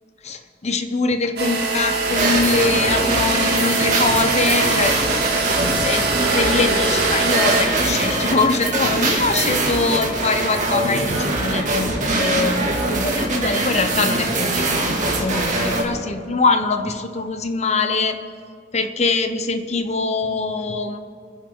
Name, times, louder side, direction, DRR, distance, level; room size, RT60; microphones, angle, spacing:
voice 1, 0.2-5.0 5.8-12.6 12.9-18.2 18.7-21.0, left 3 dB, 40° left, 8 dB, 0.9 m, -23 dB
sound 1, 1.4-7.6, right 3 dB, 65° right, 2.4 m, -23 dB
sound 2, 2.0-15.8, right 2 dB, 45° right, 2.4 m, -22 dB
29.5 x 10.5 x 3.8 m, 2.4 s
head